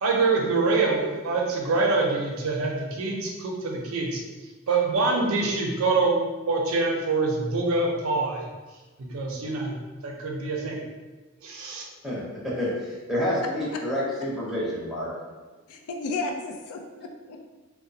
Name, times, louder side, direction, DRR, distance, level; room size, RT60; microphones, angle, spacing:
voice 1, 0.0-4.2 4.7-8.4 9.0-9.7 10.0-10.8 11.4-11.8, right 3 dB, 80° right, 0 dB, 0.5 m, -25 dB
voice 2, 12.0-15.1, left 1 dB, ahead, -8 dB, 0.6 m, -29 dB
voice 3, 15.7-17.5, left 3 dB, 90° left, 3 dB, 0.4 m, -33 dB
2.8 x 2.0 x 2.6 m, 1.3 s
head